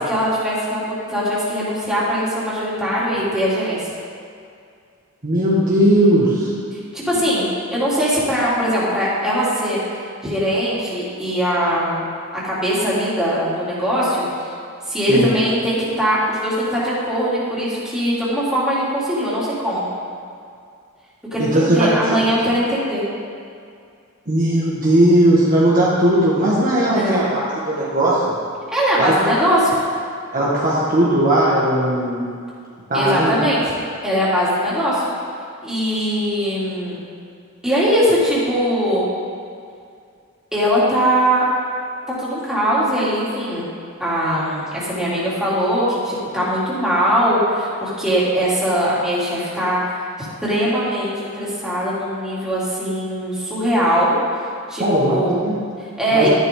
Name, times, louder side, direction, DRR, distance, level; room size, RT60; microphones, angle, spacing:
voice 1, 0.0-3.8 6.7-9.8 10.2-12.0 12.4-14.2 14.9-19.8 21.3-23.0 26.9-27.2 28.7-29.8 32.9-33.6 34.0-35.1 35.6-36.9 37.6-39.1 40.5-41.4 42.2-43.6 44.0-50.0 50.4-54.2 54.7-54.8 55.1-55.4 56.0-56.3, equal, 5° right, -9 dB, 3.2 m, -20 dB
voice 2, 5.2-6.5 15.1-15.3 21.4-21.9 24.3-28.3 29.0-29.1 30.3-32.3 32.9-33.4 54.8-55.6 56.1-56.3, right 1 dB, 40° right, -7 dB, 1.7 m, -17 dB
13.0 x 10.5 x 3.9 m, 2.3 s
head